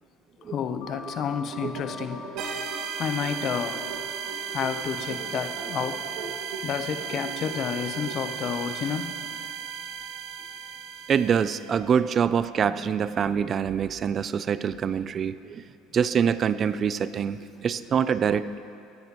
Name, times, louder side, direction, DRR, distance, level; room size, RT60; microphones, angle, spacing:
voice 1, 0.5-2.6 3.0-3.9 4.5-6.1 6.6-9.1 12.6-12.7, left 7 dB, 50° left, 9 dB, 0.7 m, -30 dB
sound 1, 0.8-6.0, left 2 dB, 80° left, 1.7 m, -46 dB
sound 2, 1.0-8.7, right 3 dB, 80° right, 1.8 m, -41 dB
sound 3, 2.4-11.7, right 8 dB, 65° right, 1.2 m, -35 dB
voice 2, 11.1-15.6 15.9-18.7, right 7 dB, 40° right, 15 dB, 0.3 m, -25 dB
16.5 x 9.7 x 3.0 m, 2.5 s
supercardioid pair, 95°, 0 cm